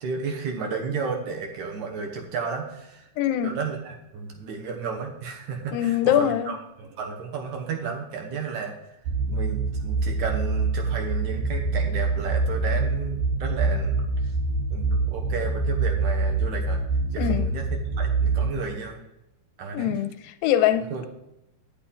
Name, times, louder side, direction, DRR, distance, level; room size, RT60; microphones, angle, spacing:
voice 1, 0.0-3.1 3.4-8.8 9.3-14.3 14.7-16.8 17.1-17.7 18.0-19.0 19.6-20.0 20.7-21.0, right 5 dB, 70° right, 2 dB, 2.2 m, -33 dB
voice 2, 3.2-3.5 5.7-6.6 17.2-17.5 19.7-21.1, left 11 dB, 85° left, 9 dB, 2.3 m, -23 dB
sound 1, 9.1-18.6, right 3 dB, 85° right, 1.6 m, -25 dB
9.0 x 8.6 x 3.8 m, 0.90 s
omnidirectional pair, 3.9 m